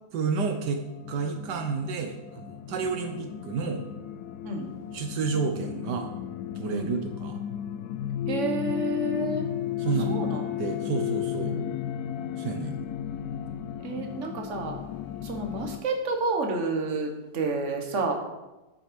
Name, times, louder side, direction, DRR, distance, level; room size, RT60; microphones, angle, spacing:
voice 1, 0.1-3.8 4.9-6.1 6.5-7.4 9.8-10.3 10.6-11.5 12.4-12.8, right 5 dB, 80° right, 5 dB, 1.5 m, -30 dB
sound 1, 0.6-15.8, left 10 dB, 75° left, 1.0 m, -34 dB
voice 2, 8.3-9.5 10.0-10.4 11.4-11.7 13.8-14.8 15.2-18.1, right 2 dB, 45° right, 3 dB, 1.6 m, -30 dB
9.0 x 7.4 x 5.2 m, 1.1 s
omnidirectional pair, 1.8 m